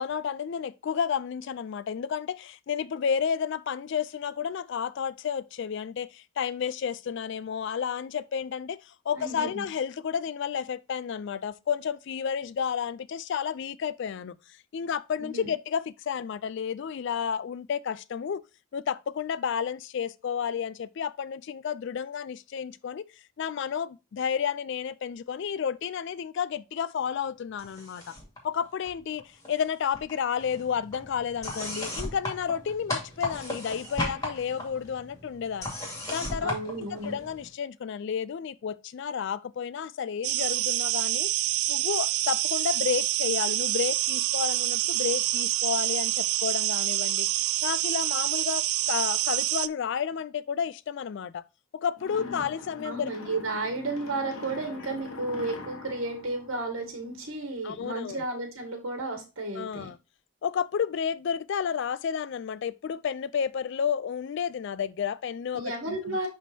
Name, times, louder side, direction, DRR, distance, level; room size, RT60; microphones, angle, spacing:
voice 1, 0.0-18.4 18.7-23.1 23.4-28.2 28.4-35.7 36.1-41.3 41.7-47.3 47.6-51.4 51.7-53.1 57.6-58.2 59.5-60.0 60.4-66.2, left 7 dB, 55° left, 0.3 m, -31 dB
voice 2, 9.1-9.6 15.2-15.5 36.4-37.2 52.2-52.5 52.8-59.9 65.5-66.3, right 2 dB, 65° right, 1.8 m, -33 dB
sound 1, 27.6-28.4 28.6-29.7 29.9-37.5, left 1 dB, 15° left, 2.4 m, -37 dB
sound 2, 40.2-49.7, right 16 dB, 90° right, 0.3 m, -27 dB
sound 3, 52.0-57.3, left 2 dB, 80° left, 1.3 m, -44 dB
11.0 x 3.7 x 2.7 m
head